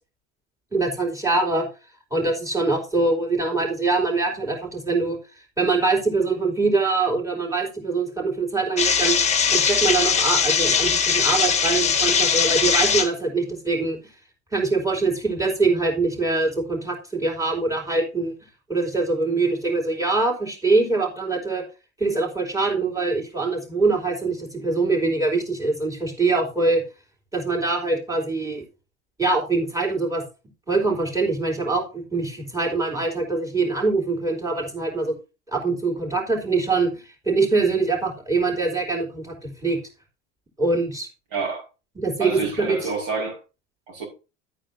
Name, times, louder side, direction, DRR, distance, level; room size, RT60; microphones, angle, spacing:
voice 1, 0.7-1.7 2.1-5.2 5.6-9.2 9.5-14.0 14.5-18.3 18.7-21.6 22.0-26.8 27.3-28.6 29.2-30.2 30.7-35.1 35.5-39.8 40.6-41.1 42.0-42.8, right 3 dB, 10° right, 3.9 m, -23 dB
sound 1, 8.8-13.1, left 6 dB, 20° left, 1.5 m, -20 dB
voice 2, 41.3-41.6 42.2-43.4 43.9-44.1, right 4 dB, 55° right, 5.3 m, -28 dB
12.0 x 8.8 x 2.7 m
figure-of-eight pair, 80°, 36 cm